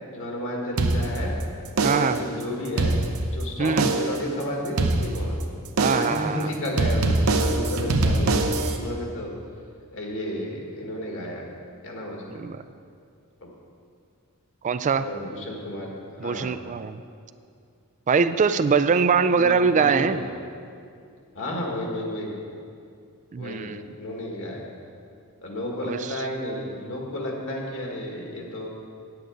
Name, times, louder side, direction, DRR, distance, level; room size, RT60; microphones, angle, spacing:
voice 1, 0.1-1.3 1.9-2.9 3.2-5.4 5.9-8.5 8.8-9.3 9.9-11.5 11.8-12.4 13.4-13.5 14.9-16.6 19.3-20.3 21.4-22.3 23.4-24.6 25.4-28.7, left 1 dB, 60° left, -1 dB, 1.7 m, -32 dB
sound 1, 0.8-1.4 1.8-2.3 2.6-3.4 3.8-4.2 4.8-5.4 5.8-6.2 6.8-8.8, right 2 dB, 70° right, 0.7 m, -23 dB
voice 2, 1.8-2.2 3.6-3.9 5.8-6.5 12.3-12.6 14.6-15.1 16.2-17.0 18.1-20.2 23.3-23.9 25.8-26.2, right 5 dB, 35° right, 12 dB, 0.3 m, -23 dB
9.1 x 8.8 x 5.1 m, 2.4 s
head